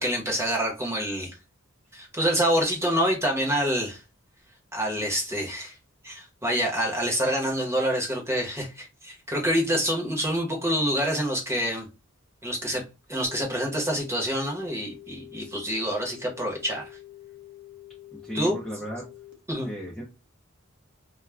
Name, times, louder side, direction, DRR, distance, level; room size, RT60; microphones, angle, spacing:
voice 1, 0.0-1.4 1.9-4.0 4.7-5.7 6.0-11.9 12.4-12.8 13.1-17.0 18.3-18.6 19.5-19.7, equal, 15° right, 0.9 m, -27 dB
sound 1, 13.2-19.3, left 15 dB, 45° right, 0.7 m, -47 dB
voice 2, 18.1-19.1 19.6-20.0, equal, 5° left, 0.5 m, -35 dB
2.3 x 2.2 x 3.1 m
head